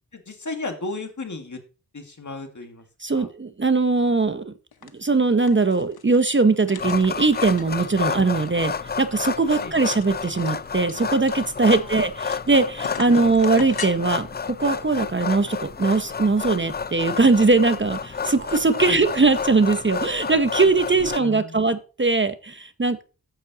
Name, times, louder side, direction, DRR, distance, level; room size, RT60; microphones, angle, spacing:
voice 1, 0.1-1.6 1.9-2.8 3.1-3.3 9.6-9.8 11.7-12.1 13.0-13.2 18.9-19.0 21.0-21.6, left 3 dB, 50° left, 5 dB, 1.9 m, -34 dB
voice 2, 3.0-4.5 4.9-23.0, right 3 dB, 30° right, 10 dB, 0.9 m, -21 dB
sound 1, 4.7-4.9 5.2-6.2 6.6-8.1 8.5-8.6 8.8-8.9 9.3-12.5 12.8-13.9, left 7 dB, 75° left, 1.0 m, -39 dB
sound 2, 6.8-21.2, left 6 dB, 25° left, 0.4 m, -30 dB
10.0 x 4.2 x 7.2 m, 0.33 s
wide cardioid pair, 65°, 38 cm